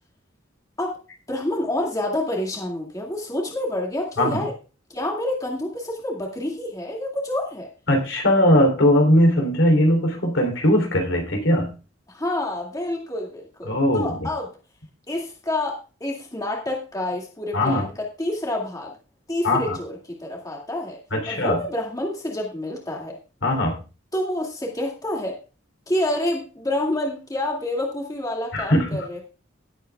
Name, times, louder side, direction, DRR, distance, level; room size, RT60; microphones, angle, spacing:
voice 1, 1.3-4.5 4.9-7.7 12.1-14.6 15.1-18.9 19.3-21.0 21.3-23.2 24.1-25.4 25.9-29.2, left 1 dB, 20° left, -1 dB, 2.3 m, -28 dB
voice 2, 7.9-11.7 13.6-14.2 17.5-17.8 19.4-19.8 21.1-21.6 23.4-23.8 28.5-28.9, left 1 dB, 70° left, 3 dB, 3.1 m, -19 dB
17.5 x 8.2 x 2.3 m, 0.33 s
head